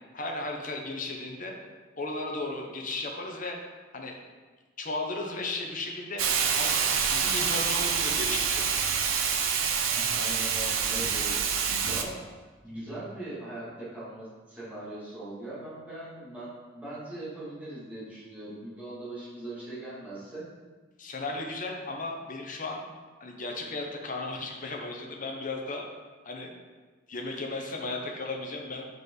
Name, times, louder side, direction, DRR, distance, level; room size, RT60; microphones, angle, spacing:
voice 1, 0.1-1.6 2.0-3.6 3.9-4.2 4.8-6.2 6.5-6.8 7.1-8.9 21.0-22.9 23.2-25.8 26.2-26.5 27.1-28.9, left 2 dB, 40° left, 1 dB, 1.0 m, -35 dB
Hiss, 6.2-12.0, right 6 dB, 85° right, 0.7 m, -27 dB
voice 2, 9.9-11.4 11.9-12.2 12.6-20.4, right 1 dB, 5° right, -11 dB, 2.5 m, -40 dB
6.6 x 5.2 x 4.8 m, 1.4 s
head